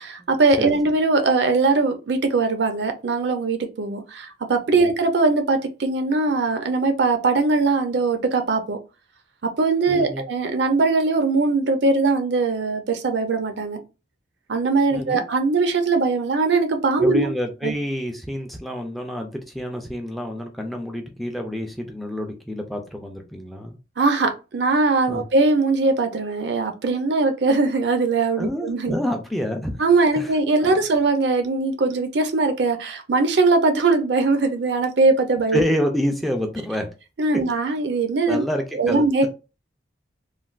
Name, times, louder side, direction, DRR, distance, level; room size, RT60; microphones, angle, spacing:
voice 1, 0.0-8.8 9.6-13.8 14.5-17.3 17.6-17.7 24.0-28.9 29.8-35.6 37.2-38.4 38.8-39.3, right 3 dB, 60° right, 0.5 m, -21 dB
voice 2, 9.9-10.2 14.9-15.2 17.0-23.8 25.1-25.2 28.4-29.8 30.2-30.3 30.6-30.8 35.5-36.9 38.3-39.3, equal, ahead, 0.4 m, -28 dB
3.2 x 2.2 x 2.4 m
head